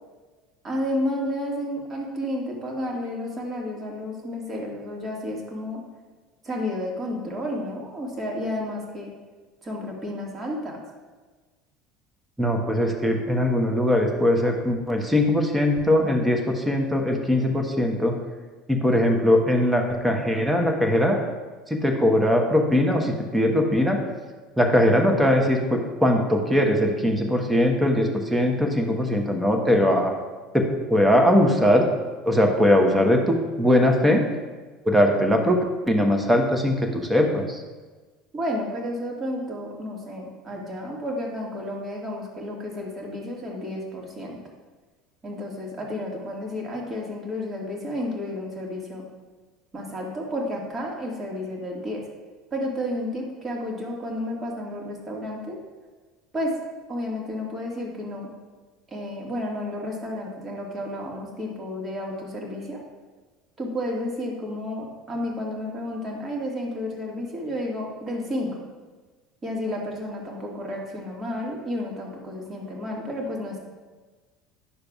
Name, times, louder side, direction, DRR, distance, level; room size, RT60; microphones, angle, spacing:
voice 1, 0.6-5.8 6.4-9.1 9.6-10.8 38.3-44.4 45.2-49.0 49.7-52.0 52.5-55.6 56.3-56.5 56.9-58.3 58.9-62.8 63.6-68.5 69.4-73.6, left 1 dB, 30° right, -1 dB, 2.0 m, -31 dB
voice 2, 12.4-18.1 18.7-21.2 21.7-24.0 24.6-30.1 30.5-31.9 32.2-34.2 34.8-35.6 35.9-37.6, left 1 dB, 10° right, 3 dB, 1.2 m, -21 dB
10.0 x 6.5 x 2.4 m, 1.3 s
hypercardioid pair, 70°, 0 cm